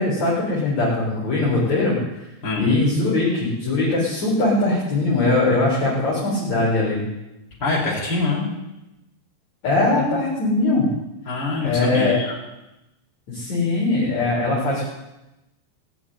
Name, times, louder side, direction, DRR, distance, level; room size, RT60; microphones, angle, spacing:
voice 1, 0.0-2.0 2.6-7.0 9.6-10.9 11.6-12.2 13.3-14.8, left 2 dB, 40° left, -6 dB, 4.8 m, -21 dB
voice 2, 7.6-8.5 10.1-10.2 11.3-12.3, left 3 dB, 25° left, -4 dB, 5.5 m, -24 dB
19.0 x 7.2 x 9.1 m, 0.94 s
omnidirectional pair, 5.1 m